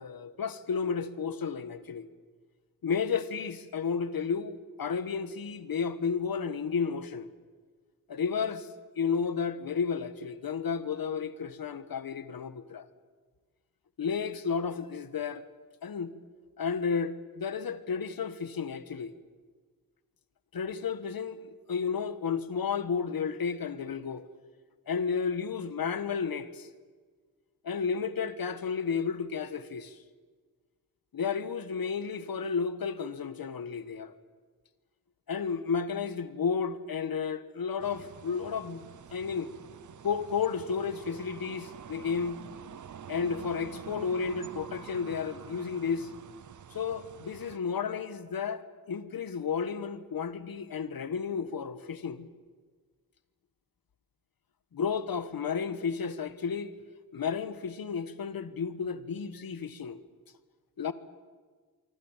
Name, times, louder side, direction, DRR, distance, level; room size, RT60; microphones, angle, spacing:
voice 1, 0.0-2.1 2.8-7.3 8.1-8.7 9.0-12.9 14.0-15.4 15.8-16.1 16.6-19.1 20.5-24.3 24.9-26.7 27.6-30.0 31.1-34.1 35.3-38.8 39.1-39.5 40.0-42.4 43.1-46.1 46.7-52.3 54.7-56.7 57.1-60.0 60.8-60.9, left 6 dB, 75° left, 1.5 m, -32 dB
sound 1, 37.8-47.6, right 8 dB, 55° right, 0.7 m, -47 dB
25.5 x 24.5 x 7.4 m
wide cardioid pair, 135°, 35 cm